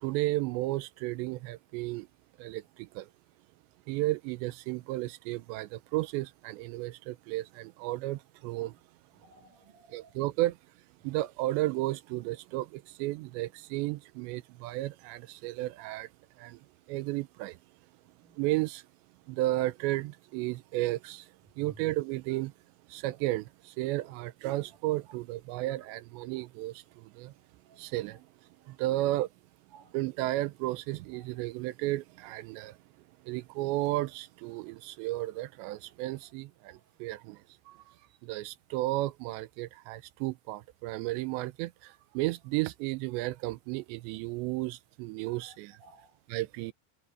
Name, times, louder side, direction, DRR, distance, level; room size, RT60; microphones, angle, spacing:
voice 1, 0.0-2.1 2.4-3.1 3.9-8.8 9.9-10.6 11.0-16.1 16.4-16.6 16.9-17.6 18.4-18.8 19.3-21.3 21.6-22.5 22.9-27.3 27.8-28.2 28.7-29.3 29.9-32.8 33.2-37.4 37.7-37.8 38.2-45.8 46.3-46.7, right 18 dB, 85° right, 2.8 m, -33 dB
voice 2, 9.2-10.1 18.2-18.3 26.2-26.3 27.7-27.8 28.7-28.8 29.7-29.9 45.3-45.6 45.8-46.1, right 4 dB, 50° right, 3.2 m, -57 dB
omnidirectional pair, 5.3 m